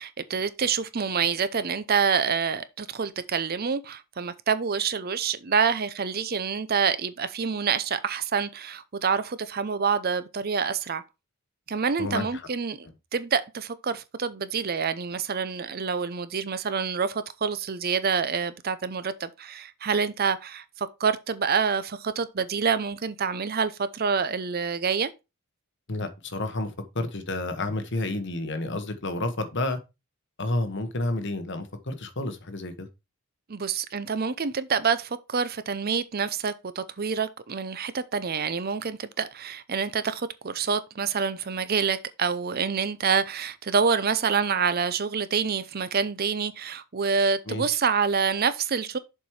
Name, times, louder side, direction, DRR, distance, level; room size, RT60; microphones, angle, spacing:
voice 1, 0.0-11.0 11.7-12.9 13.1-25.1 33.5-49.0, right 6 dB, 40° right, 0.6 m, -27 dB
voice 2, 12.0-12.5 25.9-29.8 30.4-32.9 47.5-47.7, left 2 dB, 50° left, 1.2 m, -30 dB
7.1 x 4.6 x 4.7 m
head